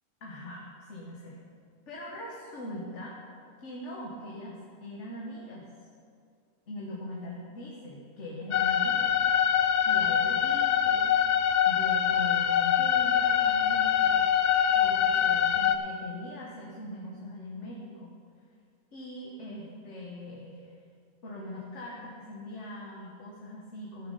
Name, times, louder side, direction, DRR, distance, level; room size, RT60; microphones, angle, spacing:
voice 1, 0.2-1.4 1.9-3.2 3.6-5.7 6.7-9.2 9.8-11.2 11.6-18.2 18.9-20.7 21.2-24.1, left 1 dB, 55° left, -3 dB, 1.6 m, -41 dB
sound 1, 8.5-15.8, left 9 dB, 85° left, 0.4 m, -24 dB
13.5 x 6.9 x 5.4 m, 2.3 s
omnidirectional pair, 1.5 m